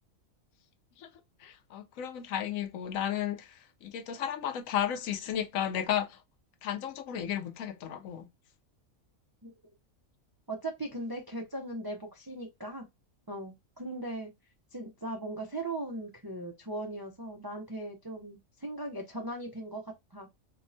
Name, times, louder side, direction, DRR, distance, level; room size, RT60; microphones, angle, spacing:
voice 1, 1.4-6.2 6.6-8.3, left 10 dB, 75° left, 1.0 m, -33 dB
voice 2, 10.5-12.9 13.3-14.3 14.7-19.8 20.1-20.3, right 1 dB, 40° right, 0.3 m, -38 dB
4.3 x 2.1 x 2.6 m
omnidirectional pair, 1.5 m